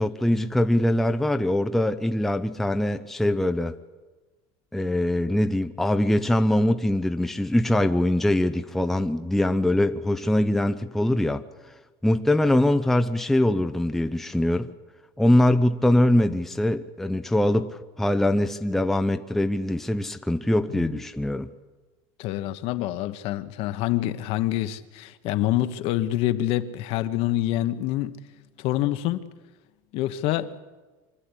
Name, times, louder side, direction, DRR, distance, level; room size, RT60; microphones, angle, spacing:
voice 1, 0.0-3.7 4.7-11.4 12.0-14.7 15.2-21.5, left 1 dB, ahead, 0.6 m, -23 dB
voice 2, 22.2-28.2 28.6-29.2 29.9-30.5, left 14 dB, 55° left, 1.2 m, -26 dB
25.0 x 12.5 x 9.9 m
cardioid pair, 160°, 12 cm